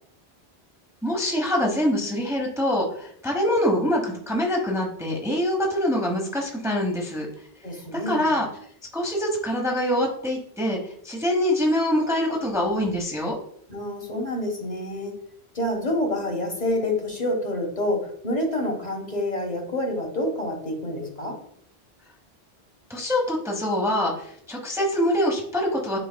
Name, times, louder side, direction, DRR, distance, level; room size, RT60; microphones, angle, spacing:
voice 1, 1.0-7.3 7.9-8.5 8.9-10.8 11.0-13.4 22.9-26.0, left 1 dB, 5° right, 0 dB, 1.0 m, -24 dB
voice 2, 7.6-8.4 13.7-15.1 15.5-21.4, left 1 dB, 40° left, 1 dB, 1.4 m, -28 dB
9.8 x 4.6 x 2.2 m, 0.65 s
omnidirectional pair, 1.1 m